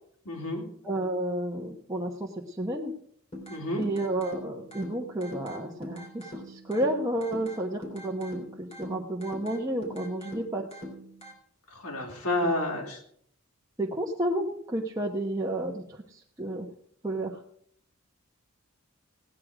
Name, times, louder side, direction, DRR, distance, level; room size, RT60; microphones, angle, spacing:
voice 1, 0.3-0.7 3.5-3.8 11.7-13.0, left 1 dB, 85° left, 1 dB, 3.3 m, -30 dB
voice 2, 0.8-2.9 3.8-10.7 12.4-12.5 13.8-16.7 17.0-17.4, right 1 dB, 15° right, -2 dB, 1.1 m, -31 dB
sound 1, 3.3-11.3, equal, 30° left, 3.4 m, -43 dB
17.0 x 9.7 x 5.0 m, 0.64 s
head